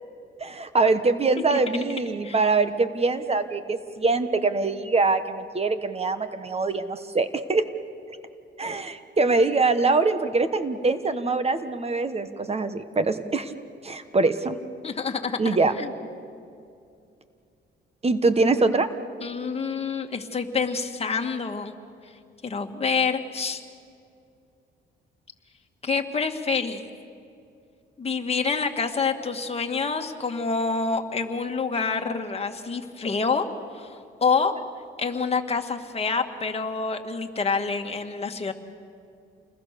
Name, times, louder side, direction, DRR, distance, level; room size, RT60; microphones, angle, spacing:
voice 1, 0.4-7.6 8.6-13.5 13.8-14.6 15.4-15.7 18.0-18.9, right 3 dB, 30° right, 11 dB, 1.3 m, -23 dB
voice 2, 14.8-15.9 19.2-21.7 22.4-23.6 25.8-26.9 28.0-33.5 33.7-34.5 35.0-38.5, left 5 dB, 30° left, 4 dB, 2.0 m, -27 dB
29.0 x 21.5 x 6.9 m, 2.5 s
cardioid pair, 90°, 20 cm